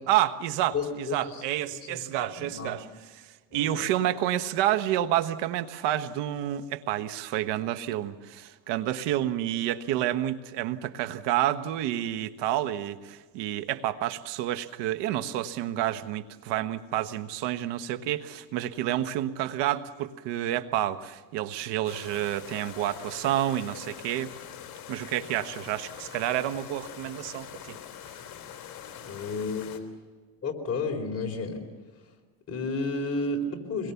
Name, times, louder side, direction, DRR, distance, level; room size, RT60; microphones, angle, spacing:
voice 1, 0.1-2.9 3.1-24.3 24.9-27.8, right 12 dB, 60° right, 11 dB, 1.5 m, -29 dB
voice 2, 0.7-1.4 1.9-2.0 2.4-2.8 3.5-3.9 29.0-29.8 30.4-31.6 32.5-33.9, left 3 dB, 30° left, 2 dB, 4.2 m, -32 dB
sound 1, 21.8-29.8, left 9 dB, 45° left, 3.5 m, -43 dB
25.5 x 22.0 x 7.1 m, 1.4 s
supercardioid pair, 120°, 49 cm